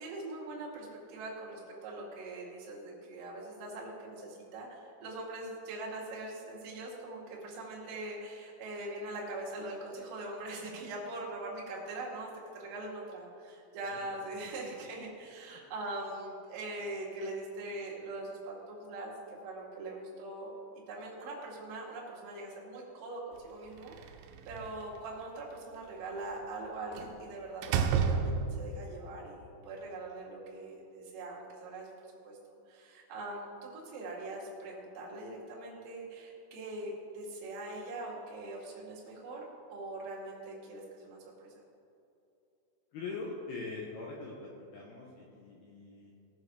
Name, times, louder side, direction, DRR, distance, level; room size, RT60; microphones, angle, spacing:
voice 1, 0.0-20.5 20.9-23.9 24.4-31.9 32.2-32.4 32.7-39.4 39.7-41.5, right 2 dB, 50° right, -4 dB, 3.0 m, -42 dB
Slam, 23.8-24.8 27.0-27.2 27.6-28.8, right 6 dB, 85° right, 3.5 m, -30 dB
voice 2, 42.9-46.1, left 3 dB, 75° left, -3 dB, 2.5 m, -42 dB
18.0 x 6.8 x 4.8 m, 2.8 s
omnidirectional pair, 6.0 m